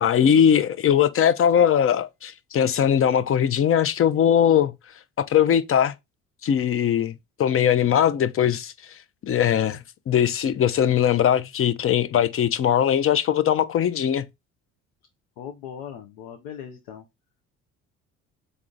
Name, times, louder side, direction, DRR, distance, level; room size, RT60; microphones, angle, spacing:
voice 1, 0.0-4.7 5.2-5.9 6.4-8.7 9.2-14.3, left 9 dB, 40° left, 0.5 m, -20 dB
voice 2, 15.4-17.1, left 8 dB, 85° left, 0.7 m, -39 dB
3.7 x 3.6 x 3.8 m
supercardioid pair, 65°, 35 cm